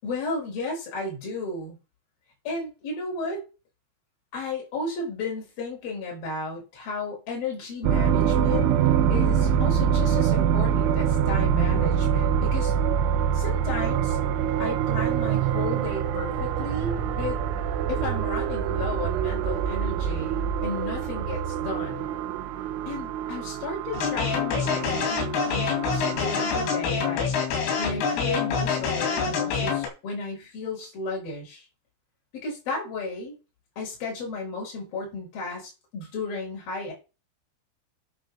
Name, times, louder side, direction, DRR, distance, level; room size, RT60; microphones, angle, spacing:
voice 1, 0.0-1.8 2.5-3.5 4.3-8.7 9.1-12.7 13.3-14.2 14.6-17.4 17.9-22.1 22.9-27.3 27.8-31.7 32.3-33.4 33.8-36.9, left 3 dB, 50° left, -2 dB, 7.1 m, -33 dB
sound 1, 7.8-26.7, right 8 dB, 80° right, 3.3 m, -25 dB
sound 2, 23.9-29.9, left 5 dB, 80° left, 5.5 m, -26 dB
11.5 x 5.0 x 6.6 m, 0.30 s
omnidirectional pair, 5.5 m